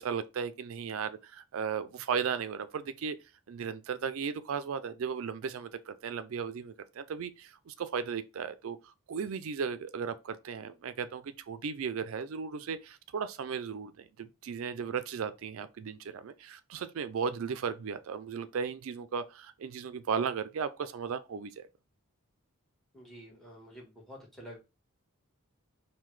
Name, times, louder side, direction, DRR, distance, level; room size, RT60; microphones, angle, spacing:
voice 1, 0.0-3.1 3.5-8.8 9.1-21.7, right 6 dB, 70° right, 0.4 m, -36 dB
voice 2, 22.9-24.6, equal, ahead, 1.2 m, -49 dB
5.6 x 2.2 x 3.1 m
head